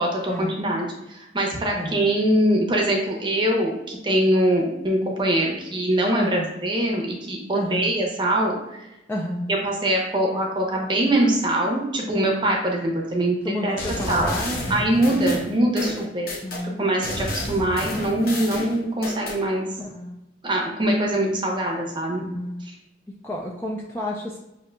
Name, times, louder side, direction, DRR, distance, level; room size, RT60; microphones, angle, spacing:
voice 1, 0.0-8.8 9.5-13.8 14.1-14.3 14.7-16.3 16.6-19.7 20.4-22.2 22.6-22.7, right 1 dB, 25° right, 0 dB, 0.7 m, -23 dB
voice 2, 6.1-6.5 7.5-7.9 9.1-9.5 13.4-14.6 16.4-16.9 19.8-20.2 22.2-22.6 23.2-24.4, left 1 dB, 15° left, -2 dB, 0.3 m, -30 dB
sound 1, 13.8-16.6 17.0-19.4, left 1 dB, 50° left, 0.7 m, -30 dB
6.1 x 2.8 x 2.2 m, 0.94 s
head